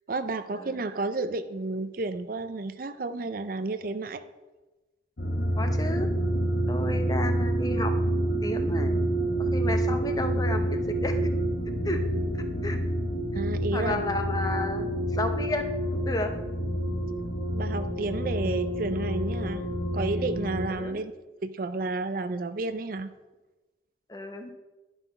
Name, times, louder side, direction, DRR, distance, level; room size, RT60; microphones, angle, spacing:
voice 1, 0.1-4.2 13.4-14.0 17.5-19.6 19.9-21.1 21.4-23.1, right 3 dB, 50° right, 11 dB, 0.5 m, -31 dB
sound 1, 5.2-20.7, right 1 dB, 80° left, 1.3 m, -28 dB
voice 2, 5.6-6.1 6.7-9.0 9.4-11.2 11.8-12.0 12.6-12.8 13.3-13.4 13.7-16.3 20.7-21.0 24.1-24.5, left 1 dB, 20° left, 6 dB, 0.8 m, -32 dB
11.5 x 5.8 x 5.6 m, 1.1 s
head